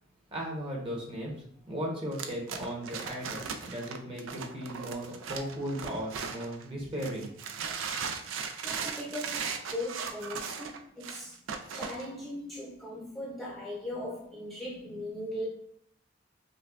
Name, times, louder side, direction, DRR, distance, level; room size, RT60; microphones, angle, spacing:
voice 1, 0.3-7.3, equal, 30° right, -3 dB, 1.0 m, -36 dB
sound 1, 2.1-6.6 7.0-12.1, right 6 dB, 85° right, 0.4 m, -37 dB
voice 2, 8.6-11.3 11.7-15.5, left 1 dB, ahead, -5 dB, 0.7 m, -39 dB
5.1 x 2.3 x 2.4 m, 0.70 s
head